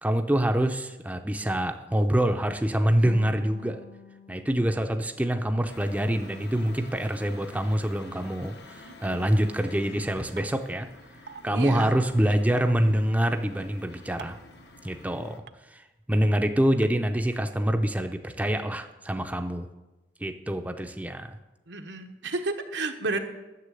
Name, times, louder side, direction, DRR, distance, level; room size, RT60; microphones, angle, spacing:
voice 1, 0.0-3.8 4.3-10.9 11.4-14.4 14.8-15.4 15.7-15.8 16.1-19.7 20.2-21.4, right 1 dB, 10° right, 6 dB, 0.5 m, -26 dB
sound 1, 3.0-6.2, left 3 dB, 50° left, 1.1 m, -47 dB
sound 2, 5.7-15.4, left 2 dB, 70° left, 1.2 m, -49 dB
voice 2, 8.9-9.5 11.5-11.9 21.7-23.2, right 3 dB, 85° right, 5 dB, 1.1 m, -32 dB
sound 3, 10.4-10.5 11.3-11.4 12.6-12.7 14.2-14.4 15.5-15.6 16.8-16.9, right 6 dB, 65° right, 0.5 m, -42 dB
9.7 x 7.3 x 7.6 m, 1.1 s
head